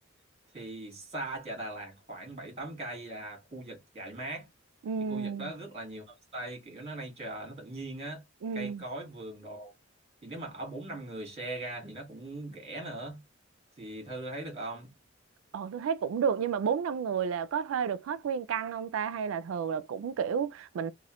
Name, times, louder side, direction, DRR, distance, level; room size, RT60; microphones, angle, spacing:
voice 1, 0.5-4.5 5.0-6.0 6.3-8.2 8.5-9.7 10.2-13.2 13.8-14.9, right 2 dB, 30° right, 1.4 m, -40 dB
voice 2, 4.8-5.5 8.4-8.8 15.5-20.9, right 7 dB, 90° right, 0.3 m, -31 dB
3.0 x 2.1 x 2.9 m
head